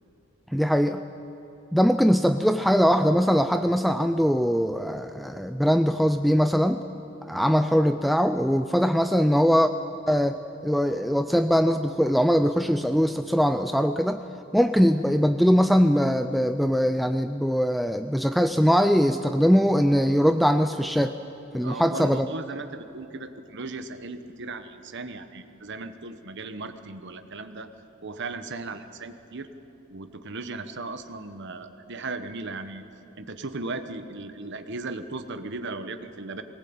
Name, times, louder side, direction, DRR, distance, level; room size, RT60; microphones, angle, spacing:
voice 1, 0.5-1.0 1.7-6.8 7.3-9.7 10.1-10.4 10.6-14.2 14.5-21.2 21.5-22.3, equal, ahead, 8 dB, 0.4 m, -21 dB
voice 2, 21.6-27.7 28.0-29.5 29.9-32.8 33.2-36.4, right 3 dB, 55° right, 9 dB, 1.1 m, -37 dB
20.5 x 19.0 x 8.8 m, 2.9 s
head